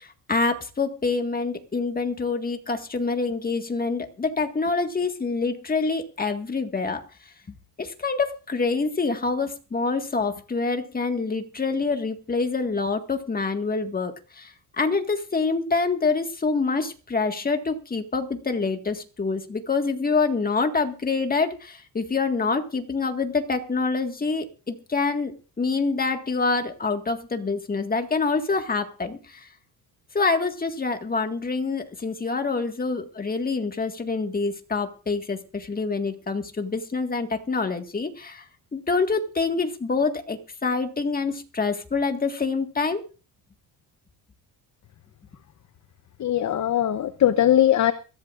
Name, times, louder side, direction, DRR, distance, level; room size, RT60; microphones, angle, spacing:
voice 1, 0.0-7.0 7.8-14.4 14.8-25.3 25.6-29.2 30.1-38.4 38.7-43.0, left 4 dB, 20° left, 6 dB, 1.8 m, -26 dB
voice 2, 46.2-47.9, left 11 dB, 40° left, 11 dB, 0.9 m, -20 dB
23.0 x 14.5 x 2.5 m, 0.34 s
cardioid pair, 130°, 44 cm